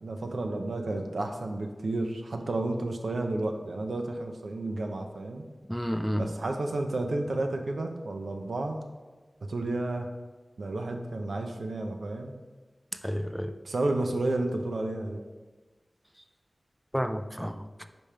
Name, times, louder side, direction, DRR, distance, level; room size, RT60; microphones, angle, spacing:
voice 1, 0.0-5.4 6.2-8.8 9.4-10.1 10.6-12.3 13.6-15.2, right 2 dB, 85° right, 4 dB, 0.6 m, -31 dB
voice 2, 5.7-6.3 13.0-13.5 16.9-17.8, equal, ahead, 9 dB, 0.3 m, -31 dB
5.3 x 5.1 x 4.3 m, 1.3 s
wide cardioid pair, 55°, 0 cm